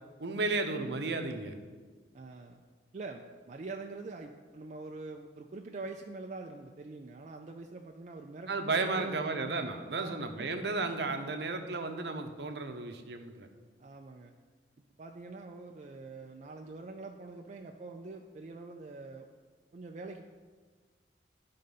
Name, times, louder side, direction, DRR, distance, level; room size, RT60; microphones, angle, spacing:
voice 1, 0.2-1.6 8.5-13.5, right 3 dB, 65° right, 5 dB, 0.7 m, -33 dB
voice 2, 2.1-2.6 2.9-9.3 9.9-10.5 13.8-14.3 15.0-19.3 19.7-20.3, right 3 dB, 40° right, 2 dB, 0.4 m, -44 dB
10.5 x 3.8 x 5.3 m, 1.5 s
head